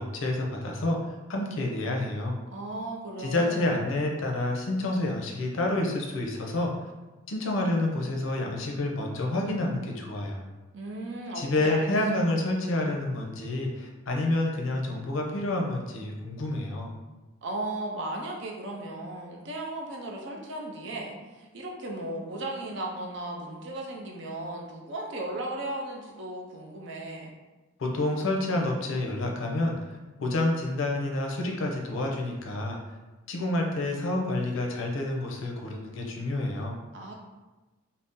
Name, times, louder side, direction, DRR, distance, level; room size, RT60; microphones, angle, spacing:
voice 1, 0.0-2.4 3.2-6.7 7.3-10.4 11.3-16.9 27.8-32.8 33.3-36.8, left 2 dB, 70° left, 0 dB, 0.5 m, -29 dB
voice 2, 2.5-3.7 10.7-11.9 17.4-27.3 36.9-37.1, right 2 dB, 60° right, -1 dB, 0.5 m, -36 dB
2.6 x 2.0 x 3.5 m, 1.2 s
head